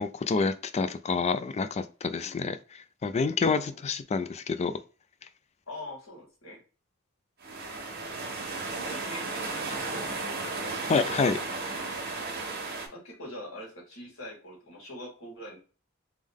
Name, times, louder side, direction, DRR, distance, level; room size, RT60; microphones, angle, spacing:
voice 1, 0.0-2.6 3.0-4.7 10.9-11.4, left 4 dB, 30° left, 13 dB, 0.3 m, -28 dB
voice 2, 2.1-2.5 3.4-3.8 5.7-6.6 8.7-10.2 12.3-15.6, left 1 dB, 75° left, -3 dB, 2.0 m, -44 dB
sound 1, 7.4-12.9, right 3 dB, 50° right, 1.0 m, -34 dB
3.5 x 3.1 x 3.5 m, 0.36 s
head